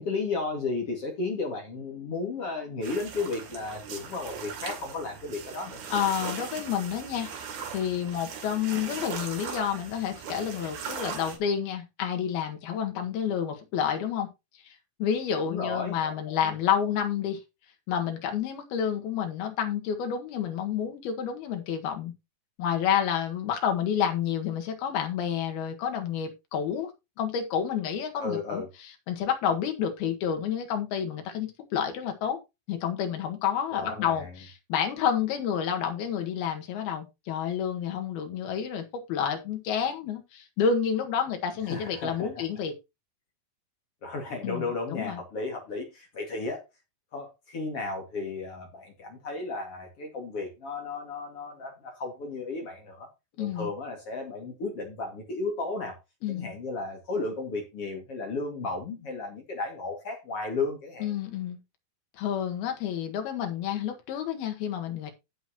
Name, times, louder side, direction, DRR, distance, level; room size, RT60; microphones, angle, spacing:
voice 1, 0.0-5.8 15.5-16.6 28.2-28.7 33.7-34.3 41.6-42.3 44.0-46.6 47.1-53.1 53.4-56.0 56.3-61.1, left 3 dB, 45° left, 2.7 m, -34 dB
sound 1, 2.8-11.4, right 6 dB, 70° right, 3.9 m, -39 dB
voice 2, 5.9-7.3 7.7-14.3 14.6-14.8 15.0-17.4 17.9-22.1 22.6-26.9 27.2-28.6 29.1-32.4 32.7-42.7 44.4-45.2 53.4-53.7 56.2-56.5 61.0-61.6 62.1-65.1, left 8 dB, 85° left, 3.6 m, -29 dB
16.5 x 6.3 x 2.9 m
omnidirectional pair, 4.3 m